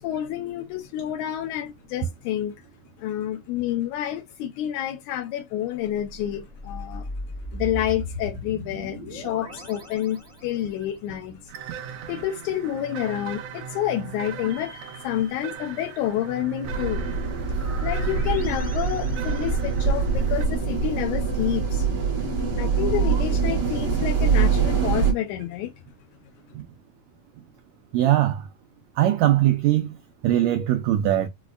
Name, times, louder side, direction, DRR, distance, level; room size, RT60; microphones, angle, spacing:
voice 1, 0.0-2.6 3.0-7.1 7.5-11.5 12.1-17.1 17.8-21.9 22.6-25.7, left 11 dB, 80° left, 1.7 m, -29 dB
sound 1, 5.9-10.9 14.3-16.1 17.5-20.1 22.8-23.2, left 1 dB, 30° left, 0.7 m, -39 dB
sound 2, 11.5-20.4, right 8 dB, 75° right, 1.7 m, -39 dB
sound 3, 16.6-25.1, right 5 dB, 55° right, 1.0 m, -24 dB
voice 2, 27.9-28.5 29.0-30.0 30.2-31.3, right 13 dB, 90° right, 1.5 m, -21 dB
5.0 x 2.1 x 2.3 m
omnidirectional pair, 3.7 m